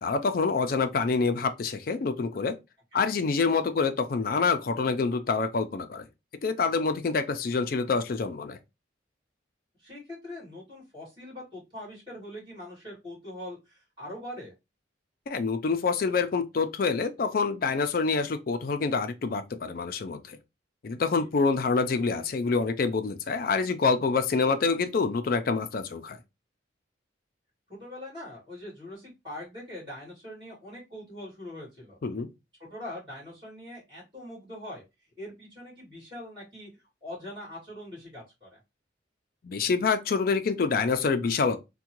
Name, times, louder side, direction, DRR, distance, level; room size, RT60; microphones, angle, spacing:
voice 1, 0.0-2.6 2.9-6.1 6.4-8.6 15.3-20.4 20.8-26.2 32.0-32.3 39.4-41.6, left 4 dB, 50° left, 0.4 m, -26 dB
voice 2, 9.8-14.5 21.1-21.3 27.7-32.0 32.7-34.8 35.2-36.7 37.0-38.6, left 1 dB, 25° right, 2.2 m, -42 dB
3.5 x 2.2 x 2.9 m
head